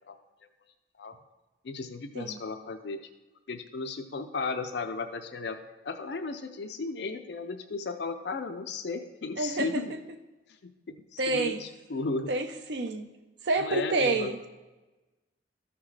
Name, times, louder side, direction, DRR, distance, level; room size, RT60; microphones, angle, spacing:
voice 1, 1.6-3.0 3.5-5.6 5.8-9.9 10.9-12.3 13.6-14.5, left 4 dB, 60° left, 8 dB, 0.4 m, -35 dB
voice 2, 9.4-9.7 11.2-11.6 12.3-13.1 13.4-14.4, right 3 dB, 65° right, 7 dB, 0.7 m, -28 dB
13.5 x 5.9 x 3.3 m, 1.1 s
head